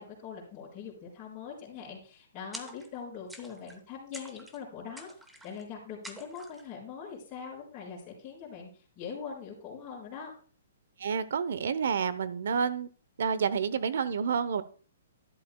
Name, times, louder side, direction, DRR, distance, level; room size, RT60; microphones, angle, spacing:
voice 1, 0.0-5.1 5.4-10.3, left 6 dB, 20° left, -8 dB, 4.0 m, -42 dB
sound 1, 2.5-3.0 3.3-3.8 4.1-4.6 5.0-5.6 6.0-6.7, right 1 dB, 5° right, 0.8 m, -47 dB
voice 2, 11.0-12.9 13.2-14.6, right 6 dB, 70° right, 15 dB, 0.8 m, -29 dB
11.5 x 11.0 x 2.3 m, 0.40 s
hypercardioid pair, 155°, 0 cm